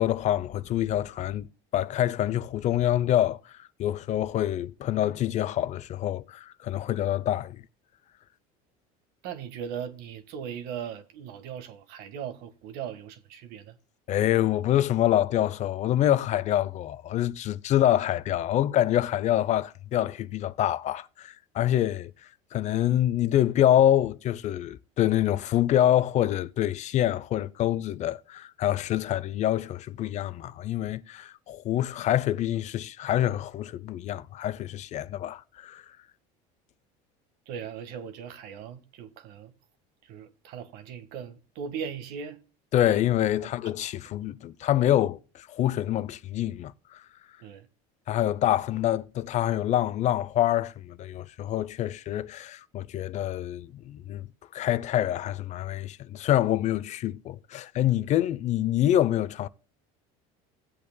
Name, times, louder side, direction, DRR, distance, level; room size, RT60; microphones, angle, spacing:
voice 1, 0.0-1.5 1.7-7.6 14.1-22.1 22.5-35.8 42.7-47.0 48.1-54.3 54.5-59.5, left 12 dB, 40° left, 0.6 m, -26 dB
voice 2, 9.2-13.8 37.5-39.5 40.0-42.4 42.9-43.0 43.4-43.7 47.4-47.7, right 8 dB, 65° right, 1.6 m, -39 dB
17.0 x 8.3 x 2.2 m
supercardioid pair, 125°, 17 cm